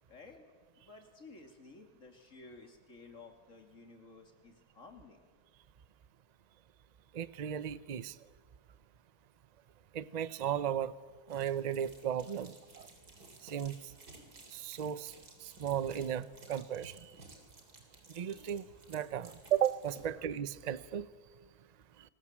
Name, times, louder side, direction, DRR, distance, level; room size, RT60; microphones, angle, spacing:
voice 1, 0.1-5.3, left 3 dB, 50° left, 4 dB, 3.1 m, -54 dB
voice 2, 7.1-8.2 9.9-10.9 11.3-12.9 13.4-13.8 14.5-15.1 15.4-17.1 18.1-21.1, right 9 dB, 45° right, 15 dB, 0.5 m, -35 dB
sound 1, 11.3-20.1, right 2 dB, 75° right, 3.8 m, -57 dB
26.0 x 20.0 x 7.4 m, 1.5 s
omnidirectional pair, 1.7 m